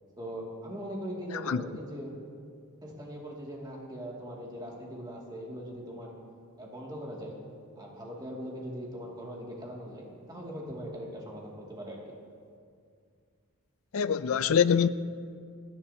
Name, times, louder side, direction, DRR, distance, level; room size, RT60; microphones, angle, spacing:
voice 1, 0.2-2.1 2.8-6.1 6.6-7.4 7.8-12.0, equal, 20° right, 2.3 m, -40 dB
voice 2, 13.9-14.9, left 7 dB, 70° left, 0.4 m, -24 dB
27.5 x 10.5 x 2.8 m
head